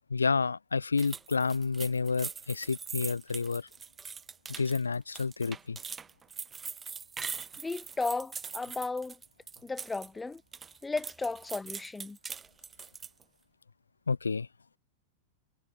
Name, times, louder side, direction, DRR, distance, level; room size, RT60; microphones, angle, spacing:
voice 1, 0.1-3.7 4.6-5.8 14.1-14.5, left 4 dB, 75° left, 1.1 m, -30 dB
sound 1, 1.0-10.1 10.4-13.2, right 6 dB, 15° right, 4.1 m, -42 dB
voice 2, 7.6-9.2 9.6-10.4 10.8-12.2, left 3 dB, 10° left, 3.3 m, -35 dB
figure-of-eight pair, 90°, 0 cm